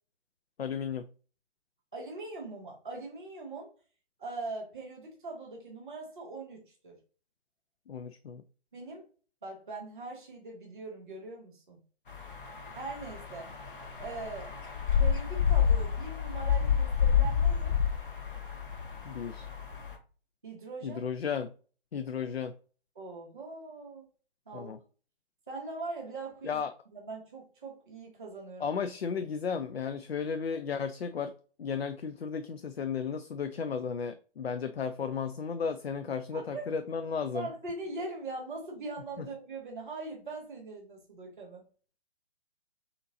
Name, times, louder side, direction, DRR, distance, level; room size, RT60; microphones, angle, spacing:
voice 1, 0.6-1.0 7.9-8.4 19.0-19.5 20.8-21.5 21.9-22.5 24.5-24.8 26.4-26.7 28.6-31.3 31.6-37.5 39.2-39.3, left 6 dB, 70° left, 10 dB, 0.5 m, -34 dB
voice 2, 1.9-3.7 4.2-7.0 8.7-9.0 9.4-11.8 12.7-13.5 14.0-14.5 15.0-17.8 20.4-21.0 22.9-24.1 24.5-24.7 25.5-26.6 26.9-28.8 36.3-36.7 37.3-41.6, right 3 dB, 5° right, -15 dB, 0.3 m, -41 dB
sound 1, 12.1-19.9, left 7 dB, 55° left, 1.3 m, -28 dB
6.6 x 2.9 x 2.6 m, 0.38 s
figure-of-eight pair, 135°, 32 cm